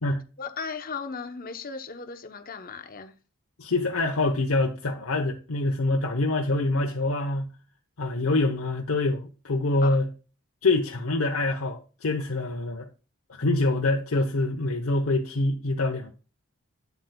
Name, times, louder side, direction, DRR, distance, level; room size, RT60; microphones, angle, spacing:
voice 1, 0.4-3.1 9.8-10.0, left 5 dB, 45° left, 0.9 m, -36 dB
voice 2, 3.6-7.5 8.0-10.1 10.6-12.9 13.3-16.1, left 2 dB, 80° left, 0.9 m, -25 dB
8.3 x 7.7 x 2.3 m
head